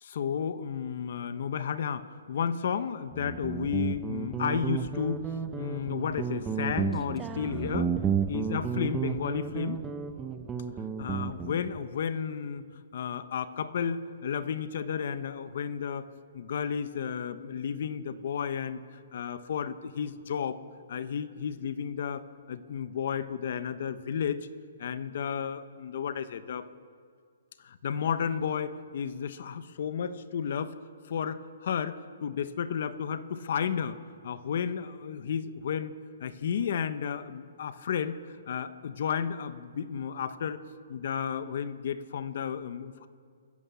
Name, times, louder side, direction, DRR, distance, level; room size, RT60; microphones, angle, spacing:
voice 1, 0.0-5.2 5.5-7.9 8.3-9.8 11.0-12.7 12.9-16.1 16.3-18.8 19.1-20.6 20.9-24.4 24.8-26.7 27.6-30.7 31.1-34.0 34.2-35.9 36.2-40.6 40.9-43.1, left 7 dB, 55° left, 12 dB, 1.1 m, -32 dB
Guitar, 3.1-11.6, right 7 dB, 10° right, 0.9 m, -32 dB
sound 1, 5.3-11.6, right 4 dB, 55° right, 4.8 m, -50 dB
28.5 x 15.0 x 7.1 m, 2.1 s
hypercardioid pair, 160°, 0 cm